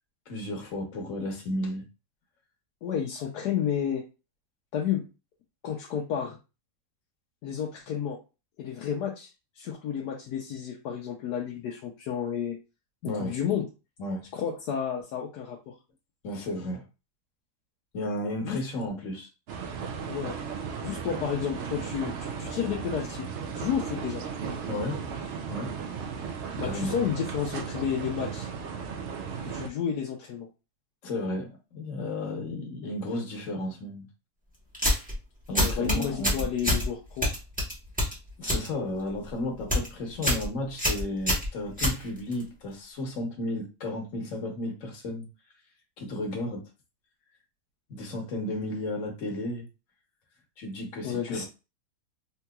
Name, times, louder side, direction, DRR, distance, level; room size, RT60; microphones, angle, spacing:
voice 1, 0.3-1.8 13.0-13.4 14.0-14.2 16.2-16.8 17.9-19.3 24.7-25.0 25.5-25.8 26.6-26.9 31.0-34.1 35.5-36.4 38.4-45.3 46.0-46.6 47.9-49.7 50.6-51.4, left 1 dB, 55° left, 1.3 m, -33 dB
voice 2, 2.8-4.0 4.7-5.1 5.6-6.4 7.4-8.2 8.6-9.3 9.6-12.6 13.1-13.7 14.3-15.8 18.4-18.6 20.1-20.4 20.8-23.3 23.5-24.2 26.6-28.5 29.4-30.5 35.5-37.3 51.0-51.4, left 8 dB, 85° left, 1.2 m, -31 dB
sound 1, 19.5-29.7, right 6 dB, 70° right, 0.7 m, -35 dB
sound 2, 34.7-35.1 35.6-36.9 37.2-38.7 39.0-39.3 39.6-39.9 40.2-40.5 40.8-42.4, left 1 dB, 5° right, 0.9 m, -26 dB
3.7 x 2.8 x 2.3 m
omnidirectional pair, 1.7 m